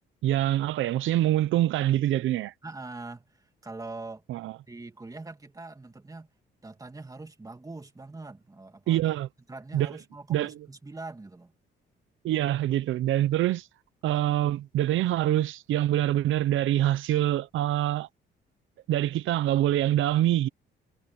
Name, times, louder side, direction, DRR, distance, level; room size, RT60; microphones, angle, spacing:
voice 1, 0.2-2.5 4.3-4.6 8.9-9.3 9.7-10.0 10.3-10.7 12.2-13.7 14.0-18.1 18.9-20.5, right 13 dB, 80° right, 0.8 m, -25 dB
voice 2, 2.6-4.2 4.7-6.3 6.6-9.0 9.5-11.5, right 3 dB, 15° right, 2.3 m, -42 dB
cardioid pair, 90°, 20 cm